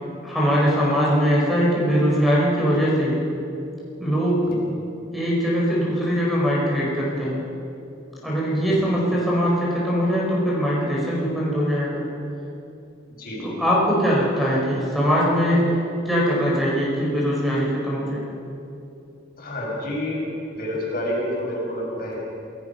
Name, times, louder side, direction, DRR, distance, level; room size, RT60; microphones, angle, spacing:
voice 1, 0.2-3.2 4.0-4.5 5.1-7.4 8.2-12.0 13.4-15.8 16.0-18.2, equal, ahead, -5 dB, 5.0 m, -21 dB
voice 2, 8.5-8.9 13.2-13.6 19.4-20.2 20.5-22.2, left 1 dB, 50° left, -3 dB, 6.2 m, -29 dB
27.0 x 17.5 x 5.8 m, 2.7 s
head